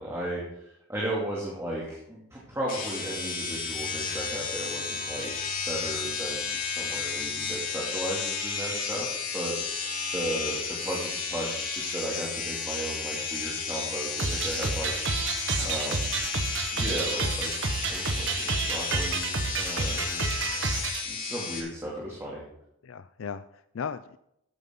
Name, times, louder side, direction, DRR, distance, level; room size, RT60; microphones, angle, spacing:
voice 1, 0.0-5.3 5.7-9.1 9.3-9.8 10.1-14.9 15.6-16.1 16.7-17.5 17.9-20.2 20.9-22.4, right 1 dB, 15° right, -5 dB, 2.6 m, -35 dB
sound 1, 2.7-21.6, left 5 dB, 40° left, 2.8 m, -33 dB
sound 2, 14.2-21.0, right 4 dB, 60° right, 1.3 m, -30 dB
voice 2, 15.6-16.0 22.8-24.2, left 6 dB, 70° left, 12 dB, 0.4 m, -38 dB
14.0 x 9.4 x 3.8 m, 0.78 s
head